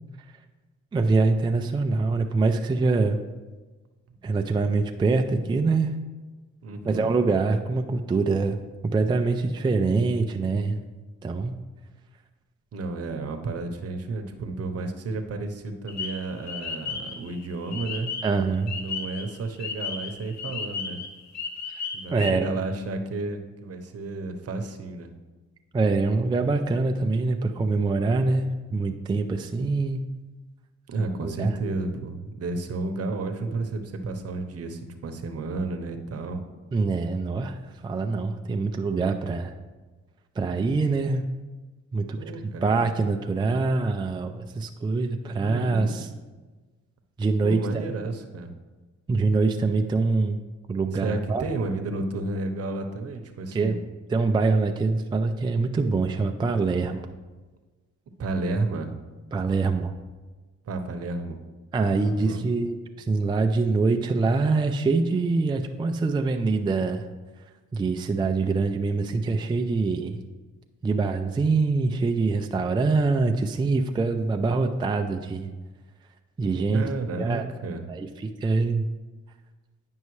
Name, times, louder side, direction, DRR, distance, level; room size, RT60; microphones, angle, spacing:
voice 1, 0.9-3.2 4.2-5.9 6.8-8.6 8.8-10.8 11.2-11.5 18.2-18.7 22.1-22.6 25.7-30.0 31.2-31.6 36.7-37.6 37.8-39.5 40.4-41.2 41.9-46.1 47.2-47.8 49.1-50.4 50.7-51.5 53.5-53.7 54.1-57.1 59.3-59.9 61.7-67.0 67.7-70.2 70.8-75.5 76.4-76.8 77.2-77.4 77.9-78.9, right 3 dB, 15° right, 5 dB, 0.4 m, -24 dB
voice 2, 6.6-7.1 12.7-18.1 18.7-21.0 21.9-25.1 30.9-36.4 42.2-42.7 45.2-46.0 47.4-48.5 50.9-53.8 58.2-58.9 60.6-61.4 62.0-62.5 76.7-77.9, right 3 dB, 55° right, 7 dB, 0.9 m, -32 dB
sound 1, 15.9-18.4 18.7-22.3, left 5 dB, 65° left, 0.9 m, -34 dB
9.4 x 5.4 x 3.1 m, 1.3 s
cardioid pair, 90°, 30 cm